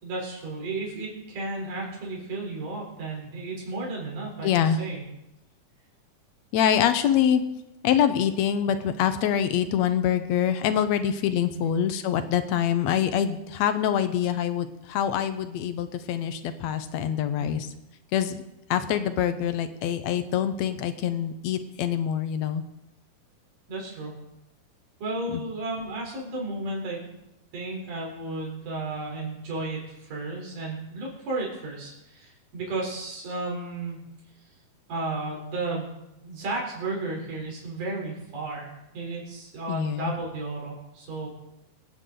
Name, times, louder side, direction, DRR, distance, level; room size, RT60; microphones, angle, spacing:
voice 1, 0.0-5.0 11.5-11.7 17.4-17.6 23.7-24.2 25.0-27.0 27.5-34.0 34.9-35.9 36.2-41.3, right 2 dB, 75° right, -2 dB, 5.4 m, -33 dB
voice 2, 4.4-4.8 6.5-7.4 7.8-17.7 18.1-18.4 18.7-22.6 25.3-25.4 39.7-40.1, left 9 dB, 70° left, 10 dB, 1.8 m, -25 dB
24.5 x 9.2 x 3.9 m, 0.90 s
omnidirectional pair, 3.8 m